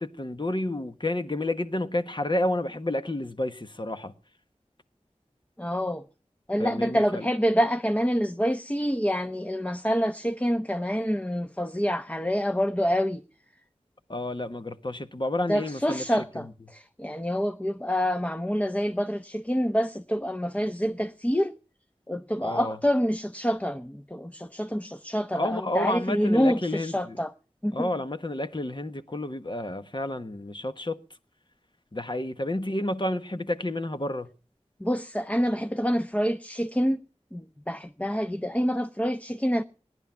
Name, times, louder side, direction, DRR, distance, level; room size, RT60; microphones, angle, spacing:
voice 1, 0.0-4.1 6.6-7.3 14.1-16.5 22.4-22.8 25.3-27.2 27.7-31.0 31.9-34.3, left 1 dB, 40° left, 1.3 m, -30 dB
voice 2, 5.6-6.0 6.5-13.2 15.5-21.5 22.1-27.3 27.6-27.9 34.8-37.0 37.3-39.6, equal, 10° left, 0.9 m, -27 dB
18.0 x 11.0 x 5.8 m
wide cardioid pair, 45°, 12 cm